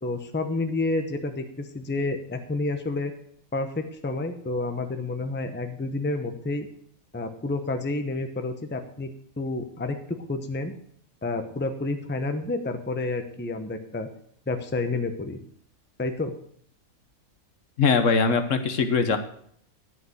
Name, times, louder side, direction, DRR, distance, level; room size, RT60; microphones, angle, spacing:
voice 1, 0.0-3.1 3.5-6.7 7.1-9.1 9.4-10.8 11.2-14.1 14.5-15.4 16.0-16.3, left 2 dB, 10° left, 7 dB, 0.7 m, -29 dB
voice 2, 17.8-19.2, left 5 dB, 60° left, 8 dB, 1.3 m, -21 dB
10.5 x 5.8 x 7.9 m, 0.64 s
omnidirectional pair, 1.5 m